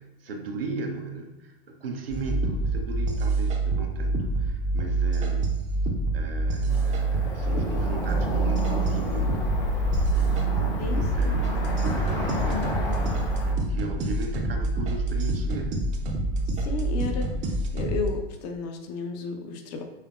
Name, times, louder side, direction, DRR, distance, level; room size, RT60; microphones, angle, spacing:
voice 1, 0.0-5.5 6.1-9.6 10.1-15.9, right 3 dB, 70° right, 3 dB, 0.7 m, -37 dB
sound 1, 2.1-18.1, right 2 dB, 25° right, 0.6 m, -26 dB
Cricket / Motor vehicle (road), 6.7-13.5, left 1 dB, 60° left, 1.5 m, -30 dB
voice 2, 10.8-11.4 16.6-17.3 17.7-19.8, left 5 dB, 40° left, 4 dB, 0.7 m, -33 dB
5.7 x 3.5 x 2.3 m, 1.0 s
figure-of-eight pair, 95°, 30 cm